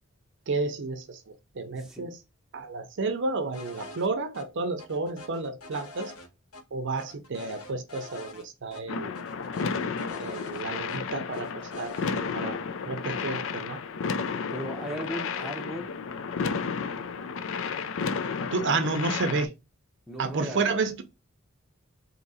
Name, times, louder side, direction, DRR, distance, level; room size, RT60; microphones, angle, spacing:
voice 1, 0.5-2.2 2.5-6.1 6.7-9.2 10.2-12.6 12.9-13.8 18.5-19.5 20.2-21.0, right 3 dB, 60° right, 0.6 m, -31 dB
sound 1, 3.5-4.1 4.3-4.4 4.8-6.6 7.0-8.4 8.7-8.8 9.1-11.0 11.3-12.1, left 2 dB, 85° left, 1.1 m, -45 dB
sound 2, 8.9-19.4, left 5 dB, 65° left, 0.4 m, -32 dB
voice 2, 14.5-15.9 20.1-20.8, right 1 dB, ahead, 0.8 m, -37 dB
3.7 x 2.8 x 4.1 m
head